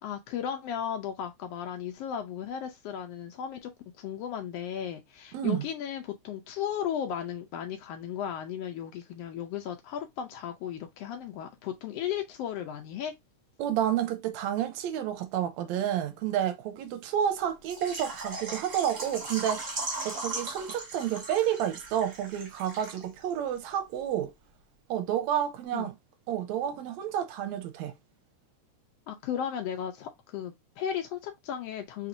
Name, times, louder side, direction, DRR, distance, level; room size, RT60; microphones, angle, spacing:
voice 1, 0.0-3.7 4.0-13.1 25.7-25.9 29.1-32.1, left 9 dB, 80° left, 1.4 m, -35 dB
voice 2, 5.3-5.7 13.6-19.6 20.1-24.3 24.9-25.9 26.3-27.9, right 10 dB, 80° right, 1.8 m, -30 dB
Water / Liquid, 17.7-23.3 23.6-23.7 24.1-24.2, right 2 dB, 50° right, 0.7 m, -38 dB
4.3 x 4.1 x 2.6 m
omnidirectional pair, 3.4 m